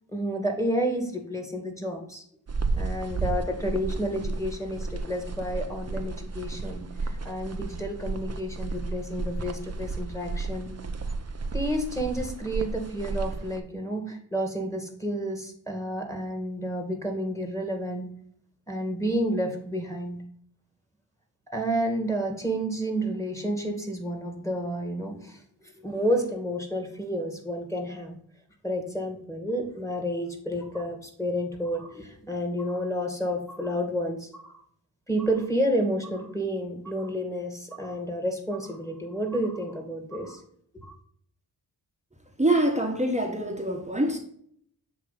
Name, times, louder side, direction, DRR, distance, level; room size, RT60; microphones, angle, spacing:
voice 1, 0.1-2.2 2.8-10.7 11.5-18.1 18.7-20.2 21.5-25.4 25.8-28.1 28.6-34.5 35.1-40.4 40.8-40.9, equal, 5° left, 2.3 m, -30 dB
sound 1, 2.5-13.6, right 3 dB, 35° right, 0.8 m, -33 dB
voice 2, 42.4-44.2, right 1 dB, 15° right, 1.4 m, -25 dB
7.5 x 3.2 x 5.8 m
cardioid pair, 40°, 44 cm